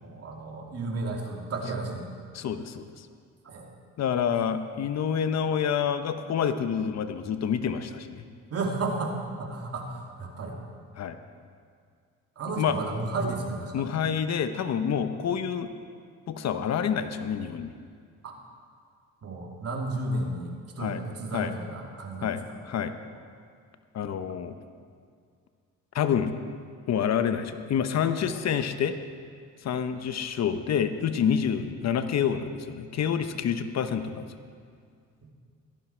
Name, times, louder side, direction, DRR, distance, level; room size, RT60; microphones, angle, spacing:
voice 1, 0.0-2.1 3.4-3.7 8.5-10.6 12.4-13.8 18.2-18.3 19.2-22.4 28.2-28.4, right 2 dB, 55° right, 0 dB, 2.7 m, -33 dB
voice 2, 2.3-3.1 4.0-8.2 11.0-11.2 12.6-12.8 13.7-15.7 16.3-17.7 20.8-21.0 21.3-21.5 22.2-22.9 23.9-24.5 25.9-26.3 26.9-29.0 29.6-34.3, left 8 dB, 60° left, 9 dB, 0.9 m, -28 dB
17.0 x 13.5 x 4.5 m, 2.2 s
cardioid pair, 90°, 30 cm